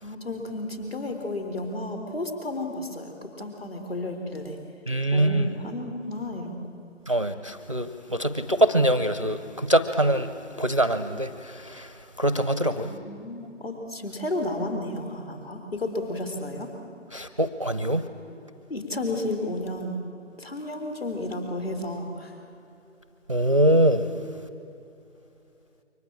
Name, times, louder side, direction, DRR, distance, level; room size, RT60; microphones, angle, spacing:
voice 1, 0.0-4.6 5.1-6.6 12.8-16.7 18.7-20.0 20.4-22.4, left 1 dB, 50° left, 6 dB, 3.9 m, -32 dB
voice 2, 4.9-5.5 7.1-10.3 10.6-11.3 11.8-11.9 12.2-12.9 17.1-18.0 23.3-24.0, right 1 dB, 25° right, 10 dB, 0.6 m, -23 dB
28.5 x 23.5 x 8.7 m, 2.7 s
figure-of-eight pair, 155°, 37 cm